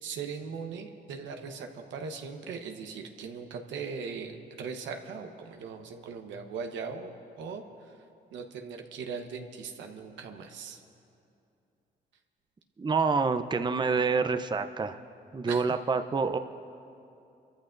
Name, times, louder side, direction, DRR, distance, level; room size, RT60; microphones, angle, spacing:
voice 1, 0.0-8.0 8.3-10.8 15.5-15.8, right 5 dB, 90° right, 5 dB, 1.1 m, -39 dB
voice 2, 12.8-15.0 15.3-16.4, right 4 dB, 25° right, 8 dB, 0.6 m, -27 dB
29.0 x 14.0 x 2.6 m, 2.6 s
cardioid pair, 75°, 19 cm